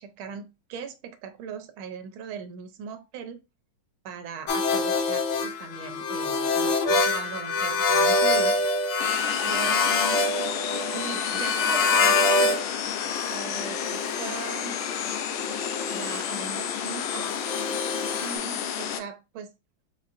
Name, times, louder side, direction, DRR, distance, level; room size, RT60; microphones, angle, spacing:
voice 1, 0.0-3.4 4.0-8.6 9.4-10.2 10.9-12.6 13.3-14.8 15.9-17.3 18.2-19.5, right 7 dB, 80° right, 1.6 m, -39 dB
sound 1, 4.5-12.6 12.9-18.3, left 3 dB, 70° left, 1.3 m, -26 dB
sound 2, 9.0-19.0, left 8 dB, 85° left, 1.5 m, -31 dB
4.1 x 4.0 x 2.5 m
omnidirectional pair, 2.2 m